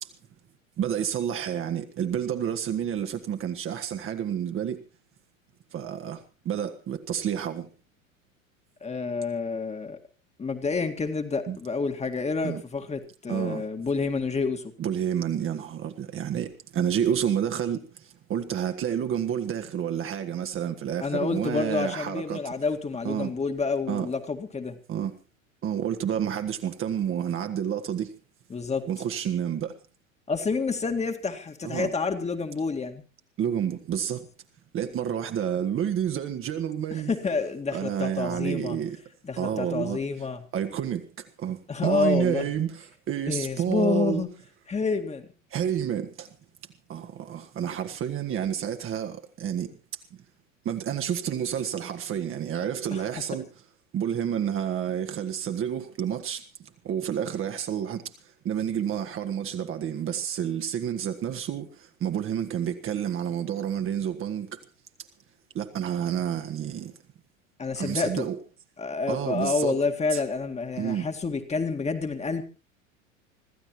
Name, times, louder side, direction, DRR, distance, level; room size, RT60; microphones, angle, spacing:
voice 1, 0.8-4.8 5.7-7.7 11.5-11.6 12.4-12.6 13.3-13.6 14.8-22.5 23.0-23.3 23.9-24.1 24.9-25.1 25.6-28.1 28.8-29.7 31.6-31.9 33.4-34.3 34.7-37.1 37.7-39.0 39.4-40.0 40.5-44.2 45.5-46.3 46.9-49.7 50.6-53.5 53.9-58.1 58.4-64.6 65.5-67.0 67.8-68.4 69.1-69.8 70.1-70.2 70.8-71.1, right 9 dB, 30° right, 1.7 m, -29 dB
voice 2, 8.8-10.0 10.4-14.7 21.0-24.8 28.5-28.9 30.3-33.0 36.9-38.8 39.2-40.4 41.7-42.5 43.3-44.3 44.7-45.3 52.9-53.0 67.6-68.3 68.8-72.4, left 4 dB, 15° left, 2.0 m, -28 dB
25.5 x 14.5 x 3.1 m
figure-of-eight pair, 85°, 40 cm